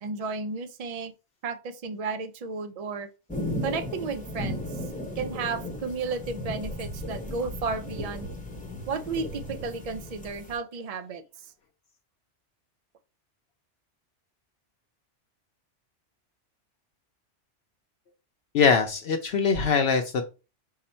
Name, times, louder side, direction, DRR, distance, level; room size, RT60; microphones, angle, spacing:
voice 1, 0.0-1.1 1.4-3.1 3.6-4.6 5.2-8.3 8.9-11.2, right 4 dB, 65° right, 0.3 m, -33 dB
sound 1, 3.3-10.6, left 1 dB, 10° left, 0.6 m, -35 dB
voice 2, 18.5-20.2, left 5 dB, 65° left, 0.8 m, -22 dB
5.4 x 2.2 x 4.2 m
omnidirectional pair, 1.2 m